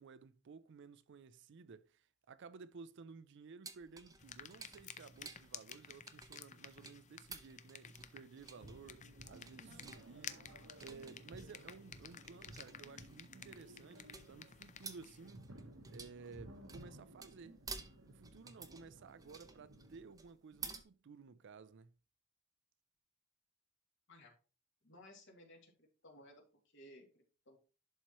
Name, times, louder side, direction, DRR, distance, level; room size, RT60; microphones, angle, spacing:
voice 1, 0.0-10.4 10.8-15.5 15.9-17.6 18.1-21.9, right 5 dB, 60° right, 0.4 m, -55 dB
sound 1, 3.6-20.8, right 4 dB, 20° right, 0.7 m, -53 dB
sound 2, 4.2-15.3, left 7 dB, 35° left, 0.6 m, -54 dB
sound 3, 8.6-20.1, right 1 dB, 80° right, 1.2 m, -57 dB
voice 2, 24.8-25.7 26.0-27.6, left 1 dB, 65° left, 2.6 m, -59 dB
11.0 x 4.4 x 3.0 m
head